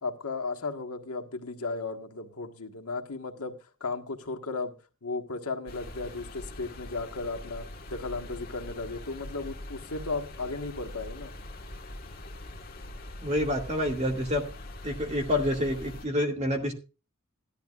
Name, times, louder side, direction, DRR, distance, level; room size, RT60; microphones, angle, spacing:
voice 1, 0.0-3.5 3.8-4.7 5.0-11.3, left 3 dB, 85° left, 4 dB, 1.5 m, -35 dB
sound 1, 5.7-16.1, left 1 dB, 45° left, 1.6 m, -43 dB
voice 2, 13.2-14.4 14.8-16.8, left 1 dB, 30° right, 2 dB, 2.2 m, -28 dB
15.5 x 11.5 x 2.4 m, 0.31 s
head